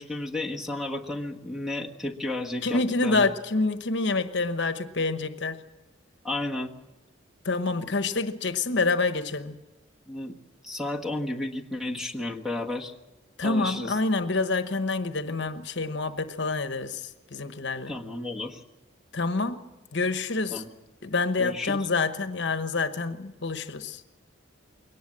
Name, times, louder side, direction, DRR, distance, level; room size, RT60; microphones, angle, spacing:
voice 1, 0.0-3.3 6.2-6.7 10.1-10.3 10.6-12.9 13.4-14.0 17.9-18.6 20.5-20.7 21.4-21.8, left 2 dB, ahead, 1.4 m, -32 dB
voice 2, 2.6-5.6 7.4-9.6 13.4-17.9 19.1-19.6 19.9-20.6 21.0-24.0, left 3 dB, 60° left, 1.0 m, -27 dB
22.0 x 18.5 x 7.5 m
head